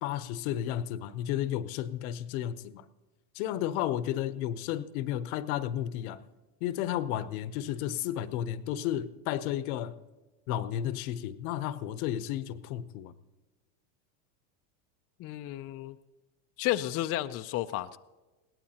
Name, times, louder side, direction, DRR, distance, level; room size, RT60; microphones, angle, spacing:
voice 1, 0.0-2.8 3.3-6.2 6.6-10.0 10.5-13.1, left 11 dB, 70° left, 14 dB, 0.9 m, -32 dB
voice 2, 15.2-16.0 16.6-18.0, left 14 dB, 35° left, 8 dB, 0.4 m, -32 dB
21.0 x 17.0 x 2.9 m, 1.2 s
supercardioid pair, 115°, 45 cm